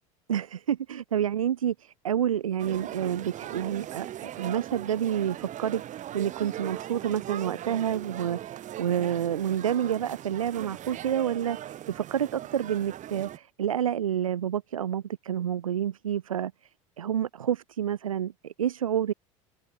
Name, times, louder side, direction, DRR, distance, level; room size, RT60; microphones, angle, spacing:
voice 1, 0.3-16.5 17.0-19.1, right 9 dB, 85° right, 1.7 m, -29 dB
sound 1, 2.6-13.4, right 12 dB, 45° right, 7.9 m, -39 dB
hypercardioid pair, 75°, 17 cm